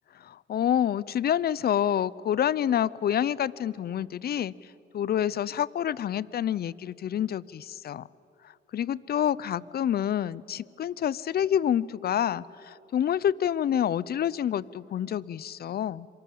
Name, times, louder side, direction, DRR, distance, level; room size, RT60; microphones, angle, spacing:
voice 1, 0.1-4.5 4.9-8.0 8.4-16.1, left 10 dB, 50° left, 22 dB, 0.6 m, -28 dB
27.0 x 24.0 x 7.7 m, 2.8 s
cardioid pair, 90°, 20 cm